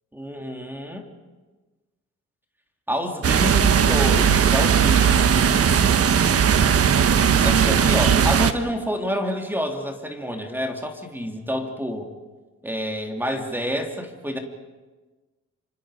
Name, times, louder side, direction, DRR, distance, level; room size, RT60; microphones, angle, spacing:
voice 1, 0.1-1.1 2.9-5.7 7.4-12.1 12.6-14.4, equal, 5° right, 2 dB, 3.2 m, -28 dB
sound 1, 3.2-8.5, right 7 dB, 50° right, 1.3 m, -18 dB
27.5 x 25.0 x 5.2 m, 1.2 s
cardioid pair, 90°, 30 cm